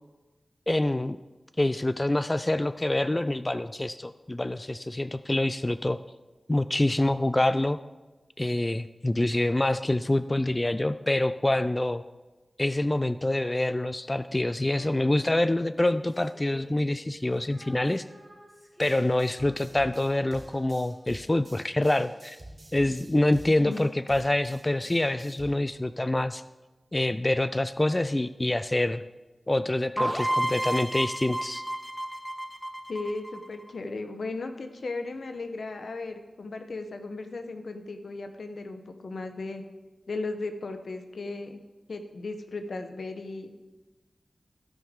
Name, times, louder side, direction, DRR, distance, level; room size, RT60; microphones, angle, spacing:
voice 1, 0.7-1.2 1.6-6.0 6.5-7.8 8.4-12.0 12.6-18.0 18.8-22.4 22.7-26.4 26.9-29.0 29.5-31.6, left 1 dB, 25° left, 12 dB, 0.3 m, -26 dB
Female singing, 14.7-21.1, equal, 10° right, 2.7 m, -51 dB
sound 1, 18.8-25.5, right 1 dB, 50° right, 2.9 m, -49 dB
sound 2, 30.0-33.7, right 1 dB, 5° left, 1.1 m, -31 dB
voice 2, 32.9-39.6 40.1-41.6 41.9-43.7, left 3 dB, 85° left, 7 dB, 0.9 m, -36 dB
16.0 x 5.5 x 3.6 m, 1.2 s
cardioid pair, 50°, 0 cm